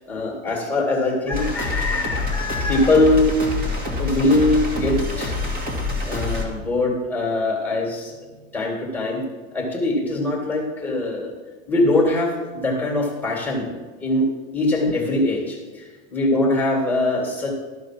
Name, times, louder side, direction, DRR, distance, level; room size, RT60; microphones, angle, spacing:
voice 1, 0.1-3.3 4.0-5.4 6.1-8.2 8.5-9.2 9.5-11.3 11.7-14.3 14.5-17.6, left 2 dB, 5° left, 0 dB, 2.1 m, -22 dB
sound 1, 1.3-6.4, left 3 dB, 25° right, 1.9 m, -26 dB
13.0 x 4.9 x 6.1 m, 1.3 s
supercardioid pair, 140°, 36 cm